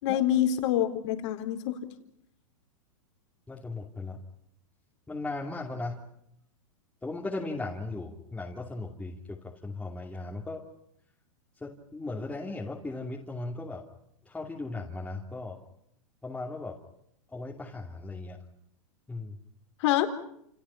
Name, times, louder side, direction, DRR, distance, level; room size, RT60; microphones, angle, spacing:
voice 1, 0.0-1.8 19.8-20.1, left 11 dB, 60° left, 7 dB, 4.1 m, -26 dB
voice 2, 3.5-4.2 5.1-6.0 7.0-10.7 11.6-13.9 14.3-15.6 16.2-16.8 17.3-18.4 19.1-19.4, left 2 dB, 5° left, -2 dB, 2.8 m, -37 dB
29.0 x 28.5 x 5.8 m, 0.74 s
hypercardioid pair, 125°, 17 cm